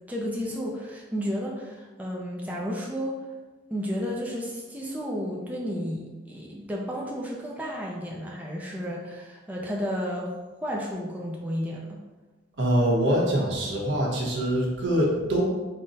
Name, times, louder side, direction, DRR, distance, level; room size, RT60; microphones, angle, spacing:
voice 1, 0.1-3.2 3.7-12.0, equal, 10° right, -3 dB, 0.4 m, -32 dB
voice 2, 12.6-15.4, equal, 75° right, -3 dB, 0.9 m, -24 dB
3.7 x 2.2 x 3.9 m, 1.2 s
head